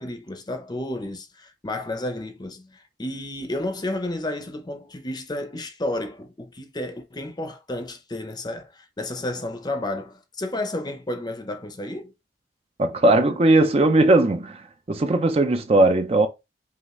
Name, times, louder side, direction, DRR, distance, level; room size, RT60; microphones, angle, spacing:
voice 1, 0.0-12.1, left 1 dB, 25° left, 0.6 m, -31 dB
voice 2, 12.8-14.6 14.9-16.3, right 2 dB, 35° right, 0.5 m, -18 dB
5.5 x 2.4 x 3.0 m
head